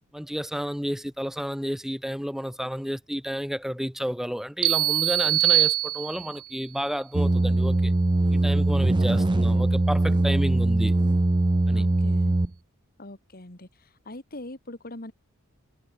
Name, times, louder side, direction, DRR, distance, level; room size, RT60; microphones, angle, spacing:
voice 1, 0.1-7.9 8.3-10.9 11.7-11.8, equal, ahead, 3.0 m, -31 dB
sound 1, 4.6-6.5, right 15 dB, 80° right, 1.3 m, -23 dB
sound 2, 7.1-12.5, right 2 dB, 20° right, 0.5 m, -22 dB
voice 2, 9.1-9.7 11.7-12.4 13.0-15.1, left 1 dB, 45° left, 2.5 m, -42 dB
head